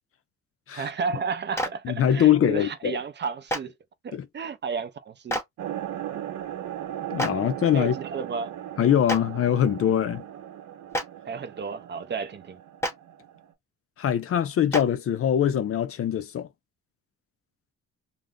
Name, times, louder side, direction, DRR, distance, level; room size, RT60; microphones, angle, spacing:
voice 1, 0.7-3.7 4.0-5.4 6.1-6.2 7.3-7.4 7.7-8.5 11.3-12.6, right 5 dB, 35° right, 0.5 m, -32 dB
Clapping, 1.5-1.7 3.5-3.6 5.3-5.4 7.2-7.3 9.1-9.2 10.9-11.0 12.8-12.9 14.7-14.8, right 1 dB, 10° left, 0.8 m, -26 dB
voice 2, 1.8-3.0 4.1-4.3 7.1-7.9 8.8-10.2 14.0-16.5, left 10 dB, 50° left, 0.5 m, -23 dB
sound 1, 5.6-13.5, right 11 dB, 75° right, 0.8 m, -37 dB
2.6 x 2.0 x 3.5 m
cardioid pair, 90°, 30 cm